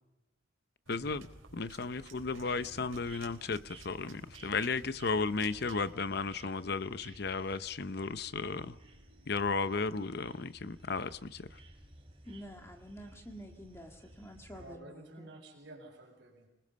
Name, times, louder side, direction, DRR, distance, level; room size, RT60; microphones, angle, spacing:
voice 1, 0.9-1.3 1.5-8.8 9.3-11.5, left 4 dB, 55° left, 0.7 m, -34 dB
sound 1, 0.9-5.9, right 3 dB, 90° right, 3.6 m, -55 dB
sound 2, 2.2-14.8, right 2 dB, 30° right, 3.9 m, -56 dB
voice 2, 12.2-15.3, equal, 15° left, 1.9 m, -49 dB
voice 3, 14.5-16.5, right 1 dB, 65° right, 4.7 m, -51 dB
26.5 x 20.0 x 5.4 m
head